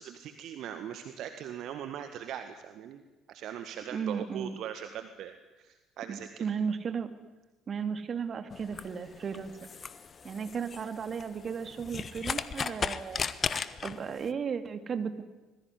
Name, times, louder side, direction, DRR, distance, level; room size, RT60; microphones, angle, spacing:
voice 1, 0.0-3.0 3.3-6.5, right 9 dB, 55° right, 8 dB, 1.7 m, -40 dB
voice 2, 3.9-4.6 6.1-7.1 7.7-9.7 10.2-13.2 13.8-15.2, right 6 dB, 40° right, 9 dB, 2.7 m, -35 dB
sound 1, 8.5-14.3, left 6 dB, 35° left, 1.4 m, -36 dB
25.5 x 21.0 x 10.0 m, 1.2 s
figure-of-eight pair, 50°, 0 cm